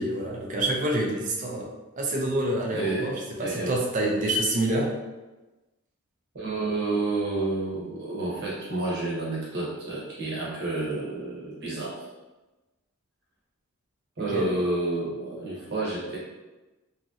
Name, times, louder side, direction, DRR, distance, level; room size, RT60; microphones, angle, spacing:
voice 1, 0.0-1.7 2.0-4.9 14.3-14.5, right 1 dB, 35° right, -1 dB, 0.5 m, -27 dB
voice 2, 2.7-3.1 3.4-3.7 6.3-11.9 14.2-16.2, right 2 dB, 50° right, -6 dB, 1.0 m, -30 dB
2.9 x 2.7 x 2.4 m, 1.1 s
head